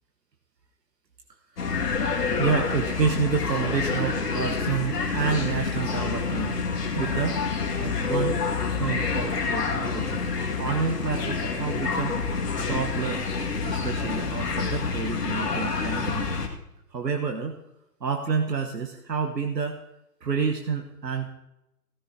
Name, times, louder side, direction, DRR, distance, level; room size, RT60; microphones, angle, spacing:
sound 1, 1.6-16.5, left 4 dB, 70° left, 2.1 m, -28 dB
voice 1, 2.4-6.6 6.9-7.4 7.8-8.4 8.8-10.2 10.6-12.2 12.7-13.3 13.6-16.3 16.9-17.6 18.0-19.8 20.2-21.3, right 5 dB, 85° right, 4 dB, 1.2 m, -29 dB
16.5 x 15.0 x 2.8 m, 0.87 s
figure-of-eight pair, 135°, 48 cm